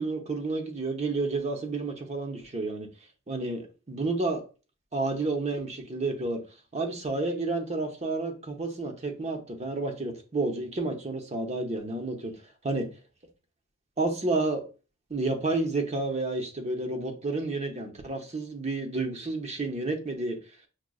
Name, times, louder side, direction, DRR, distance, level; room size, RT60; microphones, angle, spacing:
voice 1, 0.0-2.9 3.3-4.4 4.9-6.4 6.7-12.4 12.6-12.9 14.0-14.6 15.1-20.4, right 3 dB, 30° right, 0.7 m, -30 dB
6.1 x 2.2 x 2.3 m
head